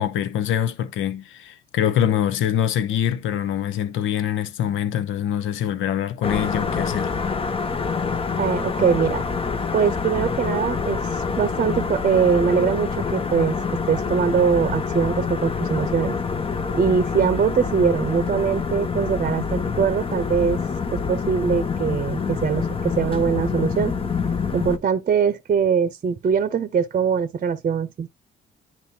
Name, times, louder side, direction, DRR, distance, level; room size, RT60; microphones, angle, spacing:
voice 1, 0.0-7.1, left 10 dB, 85° left, 0.8 m, -24 dB
sound 1, 6.2-24.8, left 5 dB, 30° left, 0.7 m, -26 dB
voice 2, 8.4-9.2 9.7-13.6 13.9-16.2 16.7-20.6 20.9-23.9 24.5-28.1, right 6 dB, 40° right, 0.7 m, -22 dB
10.5 x 4.2 x 2.8 m
cardioid pair, 90°, 20 cm